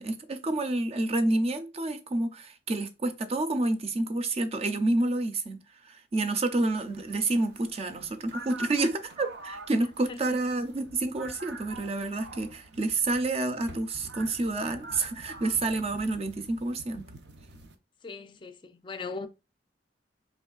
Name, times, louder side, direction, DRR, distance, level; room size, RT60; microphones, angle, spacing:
voice 1, 0.0-5.6 5.8-17.0, right 2 dB, 35° right, 0.5 m, -29 dB
sound 1, 6.6-17.8, right 2 dB, 80° right, 0.6 m, -46 dB
voice 2, 18.0-19.3, left 4 dB, 30° left, 0.4 m, -39 dB
4.4 x 3.1 x 2.3 m
head